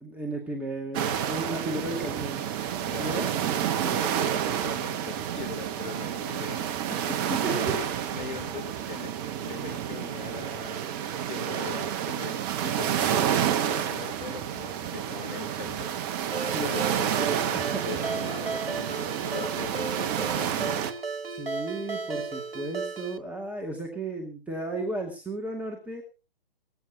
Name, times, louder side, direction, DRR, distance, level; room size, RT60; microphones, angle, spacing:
voice 1, 0.0-2.5 2.9-3.4 6.9-7.7 16.5-16.8 17.5-18.0 21.3-26.0, right 2 dB, 5° right, 1 dB, 2.1 m, -34 dB
sound 1, 0.9-20.9, right 9 dB, 25° right, 1.0 m, -29 dB
voice 2, 2.5-6.7 7.4-10.8 11.3-17.6 17.8-20.9, left 7 dB, 55° left, 8 dB, 3.3 m, -41 dB
Ringtone, 16.3-23.2, right 4 dB, 80° right, 1.8 m, -35 dB
20.0 x 14.5 x 2.8 m, 0.31 s
figure-of-eight pair, 140°, 30 cm